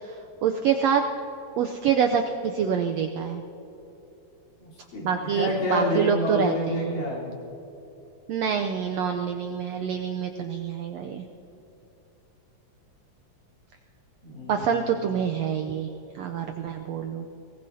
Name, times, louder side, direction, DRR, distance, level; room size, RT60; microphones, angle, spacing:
voice 1, 0.0-1.1 1.6-3.4 5.0-7.0 8.3-11.2 14.5-15.9 16.1-17.3, right 7 dB, 85° right, 5 dB, 1.5 m, -26 dB
voice 2, 4.6-7.4 14.2-15.1, left 1 dB, 75° left, -6 dB, 5.3 m, -29 dB
22.5 x 18.5 x 2.8 m, 3.0 s
omnidirectional pair, 3.7 m